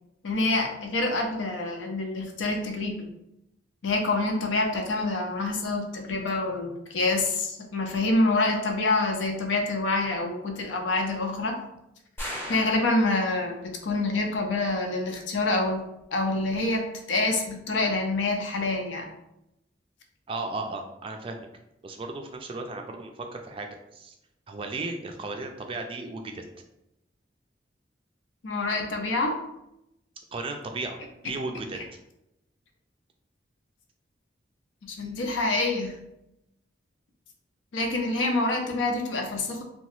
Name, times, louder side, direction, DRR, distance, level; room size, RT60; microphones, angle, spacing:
voice 1, 0.2-3.1 3.8-11.6 12.5-15.8 16.1-19.1 28.4-29.4 31.7-31.8 34.8-35.9 37.7-39.6, left 2 dB, 80° left, 3 dB, 0.5 m, -26 dB
sound 1, 12.2-13.7, left 1 dB, 15° left, 0.7 m, -38 dB
voice 2, 20.3-21.5 21.8-24.1 24.5-26.4 30.3-31.0 31.2-31.8, right 3 dB, 30° right, 4 dB, 0.3 m, -35 dB
2.8 x 2.2 x 3.0 m, 0.85 s
head